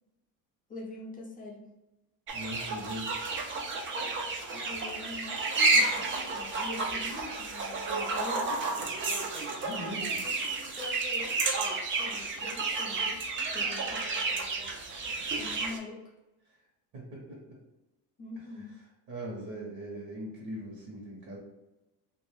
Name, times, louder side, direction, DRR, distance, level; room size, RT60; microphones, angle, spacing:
voice 1, 0.7-1.7 4.5-8.8 10.0-11.7 12.0-14.3 15.3-16.0 18.2-18.8, left 2 dB, 20° left, -1 dB, 0.6 m, -44 dB
sound 1, 2.3-15.8, right 3 dB, 30° right, 0.5 m, -31 dB
voice 2, 2.3-3.1 9.6-10.1 16.9-17.6 18.6-18.7 19.1-21.4, right 1 dB, 50° right, -5 dB, 1.2 m, -40 dB
2.6 x 2.4 x 3.5 m, 0.99 s
cardioid pair, 135°, 37 cm